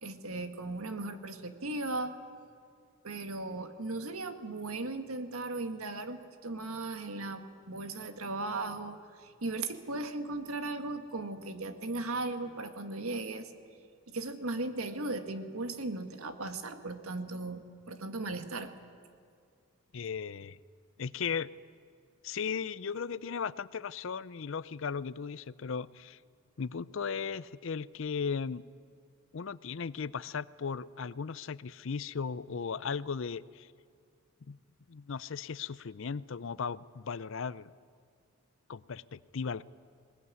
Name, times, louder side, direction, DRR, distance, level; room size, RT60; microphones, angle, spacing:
voice 1, 0.0-2.1 3.0-13.5 14.1-17.6 17.9-18.7, right 2 dB, 85° right, 8 dB, 1.7 m, -37 dB
voice 2, 19.9-20.6 21.0-21.5 22.2-26.2 26.6-28.6 29.3-33.7 34.5-34.6 34.9-37.7 38.7-39.6, left 6 dB, 60° left, 18 dB, 0.5 m, -36 dB
20.5 x 19.5 x 9.5 m, 2.3 s
head